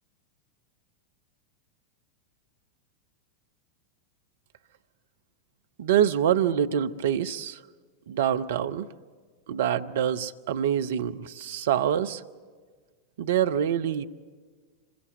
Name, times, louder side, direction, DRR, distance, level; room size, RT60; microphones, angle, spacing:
voice 1, 5.8-7.6 8.1-8.9 9.5-12.2 13.2-14.0, right 9 dB, 55° right, 10 dB, 0.7 m, -25 dB
26.0 x 22.0 x 8.0 m, 1.5 s
figure-of-eight pair, 90°, 0 cm